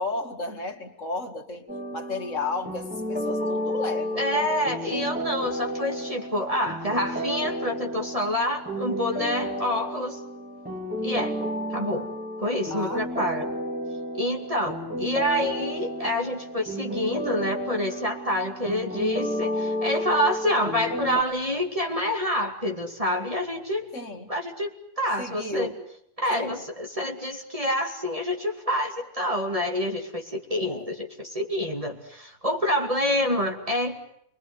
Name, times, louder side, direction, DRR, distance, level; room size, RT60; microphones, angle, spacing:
voice 1, 0.0-1.7 1.9-4.8 12.7-13.4 23.9-24.3 25.2-25.8 26.3-26.6 30.7-30.9, left 2 dB, 50° left, 4 dB, 2.5 m, -33 dB
sound 1, 1.7-21.2, equal, 5° right, 3.0 m, -32 dB
voice 2, 4.2-10.2 11.0-11.4 11.7-12.1 12.4-13.5 14.1-23.9 24.3-24.7 25.0-25.7 26.2-34.0, left 1 dB, 20° right, 2 dB, 2.5 m, -27 dB
28.5 x 21.5 x 9.5 m, 0.72 s
omnidirectional pair, 1.7 m